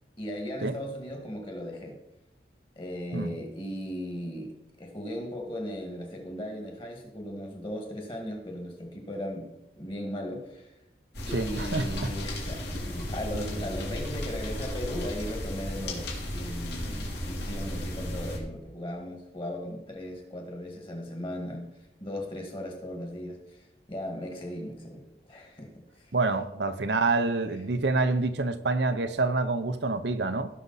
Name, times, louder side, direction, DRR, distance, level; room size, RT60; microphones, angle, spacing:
voice 1, 0.2-2.0 2.8-4.5 4.8-9.5 9.8-10.7 11.2-21.7 22.0-26.1 27.5-27.6, equal, 30° left, 2 dB, 1.9 m, -37 dB
sound 1, 11.1-18.4, left 1 dB, 70° left, 2.8 m, -34 dB
voice 2, 11.3-12.1 26.1-30.5, right 3 dB, 75° right, 9 dB, 0.8 m, -27 dB
17.0 x 6.1 x 4.1 m, 0.89 s
head